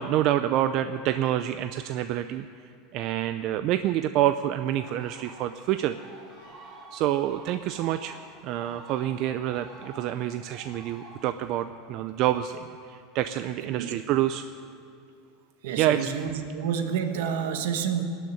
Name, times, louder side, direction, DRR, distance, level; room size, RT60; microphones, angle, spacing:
voice 1, 0.0-2.5 2.9-6.0 6.9-8.2 8.4-14.4 15.8-16.1, right 12 dB, 50° right, 10 dB, 0.4 m, -27 dB
sound 1, 4.8-11.5, right 3 dB, 30° right, 4.6 m, -49 dB
voice 2, 15.6-18.0, right 7 dB, 80° right, 7 dB, 1.3 m, -29 dB
19.0 x 6.5 x 9.5 m, 2.5 s
supercardioid pair, 145°, 0 cm